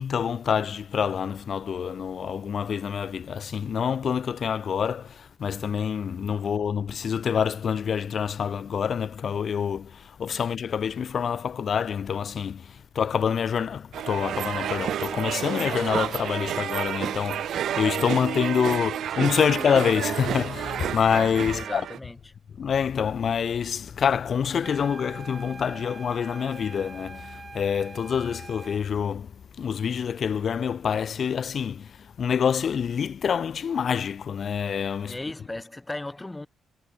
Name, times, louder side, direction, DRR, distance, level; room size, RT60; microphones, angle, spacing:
voice 1, 0.0-21.8 22.5-35.2, left 7 dB, 50° left, 0.7 m, -27 dB
sound 1, 13.9-22.0, right 10 dB, 70° right, 0.5 m, -30 dB
voice 2, 21.5-22.3 35.1-36.5, left 2 dB, 15° left, 0.5 m, -36 dB
sound 2, 24.6-28.9, right 4 dB, 30° right, 1.3 m, -44 dB
cardioid pair, 90°, 0 cm